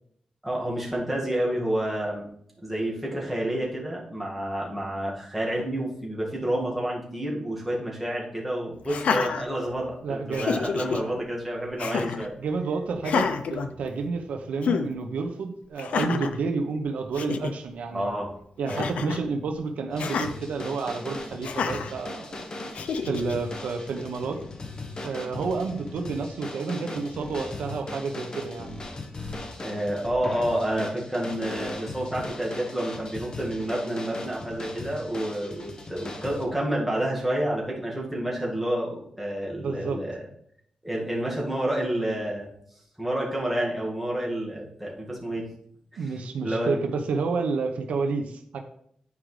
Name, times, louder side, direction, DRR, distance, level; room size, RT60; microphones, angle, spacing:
voice 1, 0.4-2.3 2.6-12.3 17.9-18.3 18.7-18.9 29.6-40.3 40.8-42.5 43.0-45.4 45.9-46.8, right 1 dB, 5° right, -4 dB, 1.9 m, -29 dB
Laughter, 8.8-10.0 10.3-11.0 11.8-12.3 13.0-14.2 14.6-14.9 15.8-16.4 16.9-17.0 17.1-17.5 18.7-19.3 20.0-20.3 21.4-21.9 22.7-23.3, left 6 dB, 75° left, 0.5 m, -28 dB
voice 2, 10.0-10.6 12.4-18.1 18.6-22.4 23.0-24.4 25.0-28.8 39.6-40.0 46.0-48.6, right 4 dB, 90° right, 5 dB, 0.8 m, -30 dB
sound 1, 19.9-36.4, left 2 dB, 35° left, 1.1 m, -38 dB
9.6 x 5.0 x 3.3 m, 0.68 s
wide cardioid pair, 125°, 2 cm